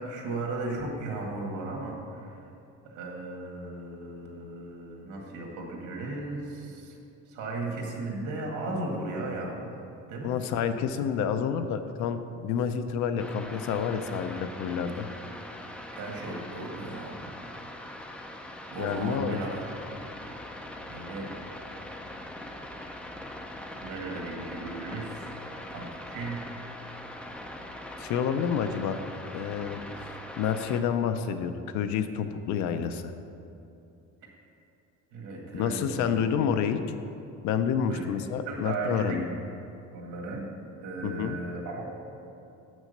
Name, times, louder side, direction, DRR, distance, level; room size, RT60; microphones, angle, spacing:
voice 1, 0.0-2.5 2.8-7.0 7.3-9.7 10.1-10.3 15.9-17.1 18.7-19.7 20.9-21.3 23.8-25.4 25.7-26.4 34.2-34.3 35.1-36.2 37.9-38.0 38.5-39.2 39.9-40.5 40.8-42.0, right 2 dB, 70° right, 0 dB, 1.9 m, -36 dB
voice 2, 10.2-15.1 18.8-19.4 28.0-29.0 29.3-29.8 30.4-33.1 35.5-36.8 37.4-39.3 41.0-41.4, left 7 dB, 65° left, 9 dB, 0.6 m, -29 dB
sound 1, 13.2-30.8, left 1 dB, 5° left, 0.3 m, -42 dB
7.5 x 6.2 x 6.5 m, 2.7 s
cardioid pair, 175°, 31 cm